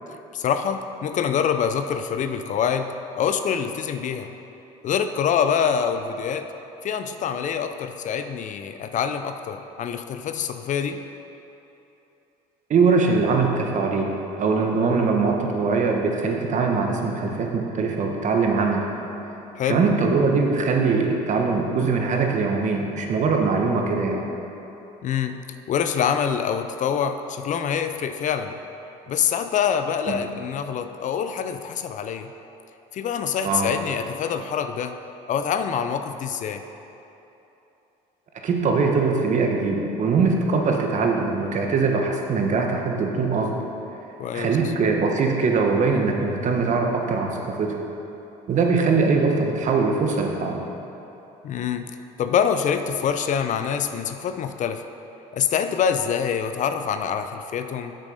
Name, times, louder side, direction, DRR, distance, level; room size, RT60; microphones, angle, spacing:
voice 1, 0.3-4.3 4.8-6.5 6.8-11.0 19.6-19.8 25.0-25.4 25.7-28.6 29.1-32.3 32.9-35.0 35.3-36.6 44.2-44.5 51.4-51.9 52.2-54.8 55.3-58.0, left 7 dB, 50° left, 9 dB, 0.5 m, -25 dB
voice 2, 12.7-18.9 19.7-24.2 30.1-30.2 33.4-33.7 38.4-43.5 44.3-47.8 48.5-50.6, right 4 dB, 45° right, 1 dB, 1.3 m, -22 dB
8.2 x 6.3 x 5.2 m, 3.0 s
supercardioid pair, 85°, 17 cm